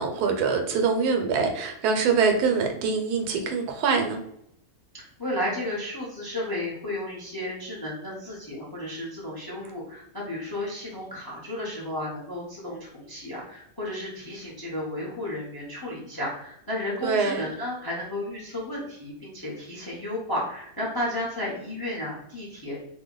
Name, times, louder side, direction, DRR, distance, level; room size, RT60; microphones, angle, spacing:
voice 1, 0.0-4.2 17.0-17.5, right 5 dB, 80° right, 4 dB, 1.1 m, -24 dB
voice 2, 4.9-22.8, left 1 dB, 25° left, -5 dB, 0.5 m, -33 dB
2.6 x 2.1 x 3.7 m, 0.74 s
omnidirectional pair, 1.7 m